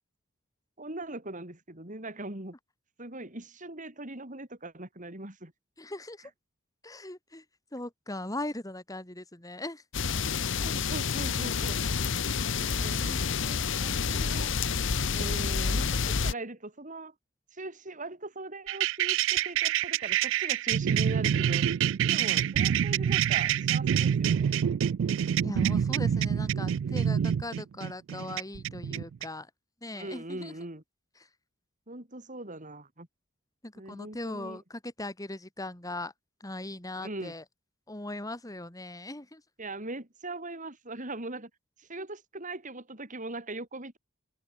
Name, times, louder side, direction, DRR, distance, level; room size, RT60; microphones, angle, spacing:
voice 1, 0.8-2.6 3.0-5.5 10.2-10.3 10.6-11.8 12.6-14.5 15.1-17.1 17.5-21.7 22.1-24.7 29.9-30.8 31.9-33.1 33.7-34.6 37.0-37.3 39.6-41.5 41.8-44.0, right 2 dB, 40° right, 5.3 m, -40 dB
voice 2, 5.8-6.3 6.8-7.4 7.7-9.8 12.6-12.8 25.4-29.5 29.8-30.5 31.2-31.3 33.6-36.1 36.4-37.4 37.9-39.4, left 1 dB, 15° left, 2.7 m, -39 dB
sound 1, 9.9-16.3, left 5 dB, 65° left, 1.0 m, -29 dB
sound 2, 18.7-29.2, right 9 dB, 65° right, 0.3 m, -27 dB
head